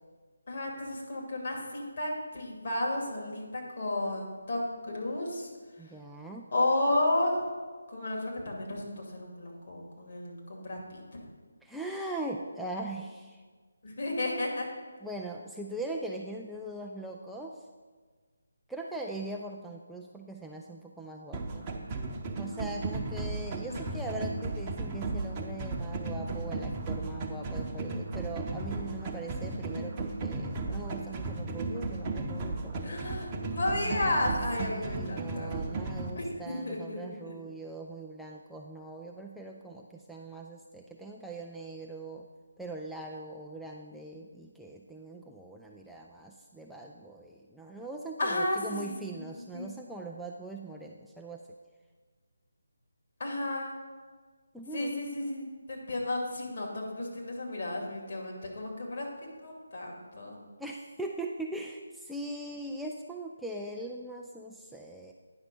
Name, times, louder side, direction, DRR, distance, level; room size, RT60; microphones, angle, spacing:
voice 1, 0.5-5.5 6.5-7.5 7.9-11.2 13.8-14.7 23.7-24.1 32.8-35.6 36.2-37.3 48.2-48.6 48.8-48.9 49.5-49.7 53.2-53.7 54.7-59.1 59.4-60.4, left 1 dB, 50° left, -1 dB, 2.4 m, -33 dB
voice 2, 5.8-6.5 11.6-13.4 15.0-17.6 18.7-21.7 22.4-33.0 33.7-34.2 34.6-42.3 42.6-51.4 54.5-55.1 60.6-65.1, right 2 dB, ahead, -2 dB, 0.3 m, -41 dB
sound 1, 21.3-36.1, right 3 dB, 20° right, 0.8 m, -35 dB
9.7 x 5.6 x 5.3 m, 1.4 s
figure-of-eight pair, 150°, 0 cm